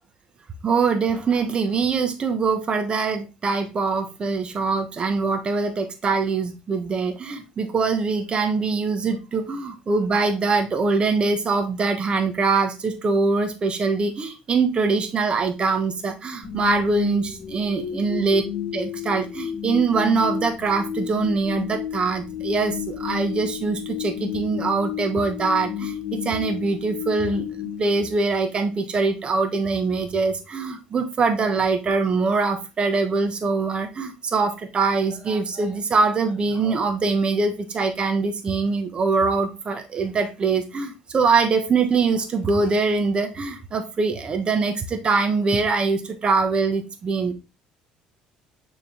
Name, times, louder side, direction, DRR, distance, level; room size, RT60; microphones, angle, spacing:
voice 1, 0.6-18.4 18.7-47.3, right 4 dB, 35° right, 6 dB, 1.3 m, -23 dB
sound 1, 16.4-28.6, left 9 dB, 40° left, 1.5 m, -31 dB
6.8 x 3.9 x 3.6 m, 0.27 s
supercardioid pair, 85°, 3 cm